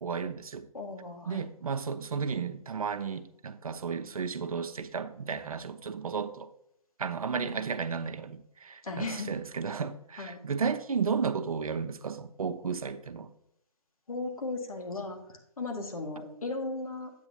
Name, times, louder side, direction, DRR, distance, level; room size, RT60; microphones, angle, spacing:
voice 1, 0.0-0.6 1.3-6.5 7.0-13.3, right 6 dB, 70° right, 0.7 m, -33 dB
voice 2, 0.7-1.4 7.3-7.7 8.8-9.3 10.2-10.4 14.1-17.1, left 3 dB, 70° left, 1.8 m, -36 dB
8.6 x 8.0 x 2.8 m
figure-of-eight pair, 145°, 19 cm